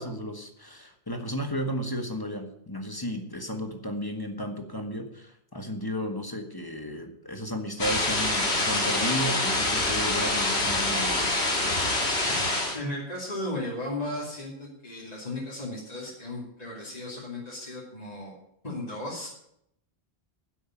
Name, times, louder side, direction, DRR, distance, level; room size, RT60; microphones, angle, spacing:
voice 1, 0.0-11.4, equal, 20° left, 5 dB, 1.5 m, -33 dB
sound 1, 7.8-12.8, left 2 dB, 70° left, 2.7 m, -26 dB
voice 2, 12.7-18.3 18.6-19.3, left 1 dB, 35° left, -6 dB, 2.9 m, -35 dB
10.0 x 8.0 x 9.2 m, 0.75 s
omnidirectional pair, 1.2 m